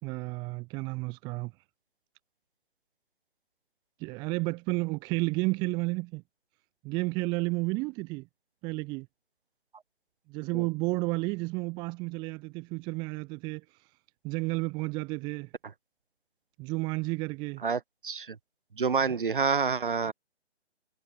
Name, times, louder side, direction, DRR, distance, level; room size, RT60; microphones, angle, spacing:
voice 1, 0.0-1.5 4.0-6.2 6.8-8.3 8.6-9.1 10.3-13.9 14.2-15.5 16.6-17.6, right 25 dB, 15° right, 2.3 m, -32 dB
voice 2, 17.6-18.4 18.8-20.1, right 5 dB, 50° right, 7.5 m, -28 dB
figure-of-eight pair, 145°, 34 cm